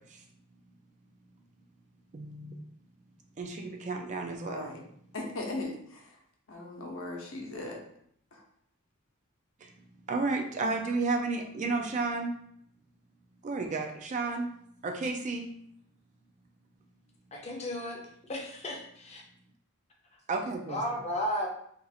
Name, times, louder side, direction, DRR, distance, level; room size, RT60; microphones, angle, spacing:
voice 1, 2.1-2.5 3.4-4.7 9.6-9.7 10.1-12.4 13.4-14.5 14.8-15.5 20.3-20.8, right 3 dB, 35° right, 3 dB, 0.4 m, -32 dB
voice 2, 4.1-4.8 5.1-6.2 6.5-7.8 8.3-8.4, left 2 dB, 65° left, 0 dB, 0.7 m, -39 dB
voice 3, 17.3-18.0 18.3-19.2 20.7-21.5, equal, 30° left, 0 dB, 0.7 m, -34 dB
2.6 x 2.4 x 4.0 m, 0.68 s
head